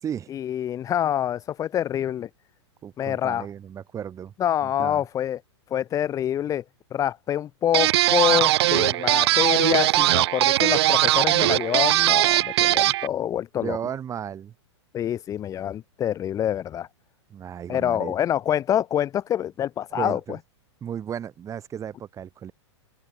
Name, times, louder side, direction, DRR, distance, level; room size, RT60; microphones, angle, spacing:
voice 1, 0.3-2.3 3.0-3.5 4.4-5.4 5.7-6.6 6.9-13.8 14.9-16.9 17.7-20.2, left 10 dB, 20° left, 1.2 m, -26 dB
voice 2, 2.8-4.3 4.6-5.0 13.6-14.5 17.3-18.2 19.9-20.4 20.8-22.5, right 9 dB, 20° right, 5.9 m, -34 dB
sound 1, 7.7-13.1, right 15 dB, 60° right, 0.9 m, -20 dB
open air
hypercardioid pair, 135°, 15 cm